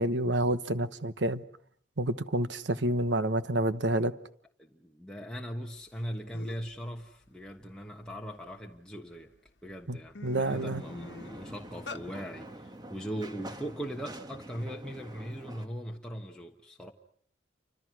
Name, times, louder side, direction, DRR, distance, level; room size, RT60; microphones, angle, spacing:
voice 1, 0.0-1.4 2.0-4.1 9.9-10.0 10.2-10.8, right 1 dB, 90° right, 1.2 m, -28 dB
voice 2, 4.6-9.3 9.6-16.9, equal, 5° left, 1.3 m, -40 dB
sound 1, 6.0-6.1 6.3-6.7 7.2-8.8 9.3-9.5 9.8-12.0, left 3 dB, 80° left, 1.2 m, -45 dB
sound 2, 10.3-15.7, right 1 dB, 25° right, 1.5 m, -46 dB
29.0 x 25.5 x 6.3 m
head